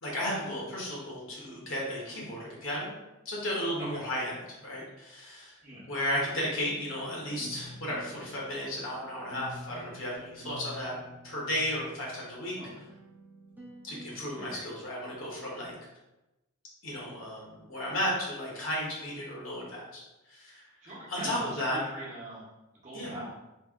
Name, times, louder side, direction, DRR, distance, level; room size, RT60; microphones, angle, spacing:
voice 1, 0.0-2.9 3.2-5.6 5.9-11.0 11.2-12.6 13.8-15.7 16.8-21.8 22.9-23.1, equal, 65° left, -4 dB, 1.2 m, -34 dB
sound 1, 6.4-14.4, right 1 dB, 10° right, 0.6 m, -48 dB
voice 2, 20.8-22.4 22.8-23.3, right 1 dB, 35° right, -6 dB, 1.0 m, -41 dB
3.4 x 2.6 x 3.6 m, 0.99 s
head